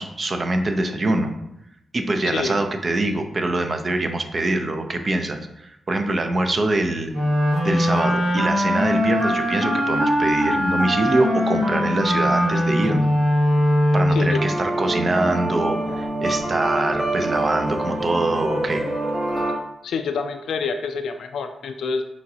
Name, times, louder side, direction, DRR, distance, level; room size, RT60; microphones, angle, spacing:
voice 1, 0.0-1.3 1.9-7.1 7.6-13.1 13.9-18.8, right 2 dB, 45° right, 6 dB, 0.5 m, -24 dB
voice 2, 2.3-2.6 14.1-14.4 19.8-22.0, left 5 dB, 85° left, 6 dB, 0.3 m, -27 dB
Clarinet - D natural minor, 7.1-14.6, equal, 70° right, 1.2 m, -21 dB
sound 1, 14.3-19.5, right 1 dB, 30° right, 1.0 m, -26 dB
5.1 x 3.1 x 2.7 m, 0.82 s
cardioid pair, 65°, 0 cm